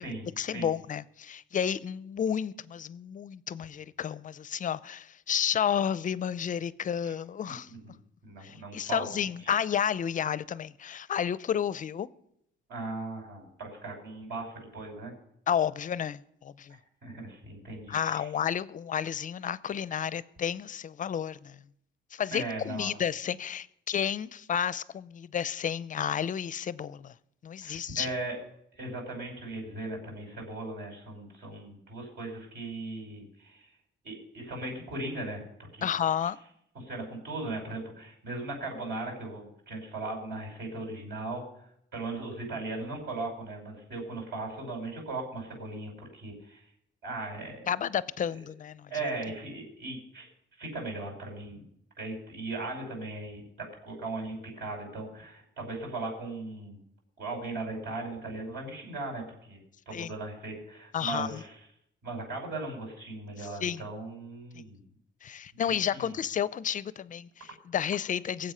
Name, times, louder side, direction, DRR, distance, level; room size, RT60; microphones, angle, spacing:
voice 1, 0.4-7.7 8.4-12.1 15.5-16.8 17.9-21.6 22.1-27.1 27.4-28.1 35.8-36.4 47.7-48.9 59.9-60.1 60.9-61.4 63.4-63.8 64.5-64.6 65.2-68.5, left 8 dB, 40° left, 0.5 m, -31 dB
voice 2, 8.2-9.1 12.7-15.1 17.0-18.3 22.3-22.9 27.6-28.4 28.7-33.7 34.0-35.4 35.7-35.8 36.8-41.4 41.9-46.6 47.0-47.7 48.9-50.3 50.6-51.6 52.0-53.4 53.8-56.8 57.2-59.6 59.9-61.6 62.0-64.8 65.7-66.1, right 2 dB, 55° right, 5.6 m, -38 dB
22.0 x 7.8 x 5.6 m
cardioid pair, 130°, 21 cm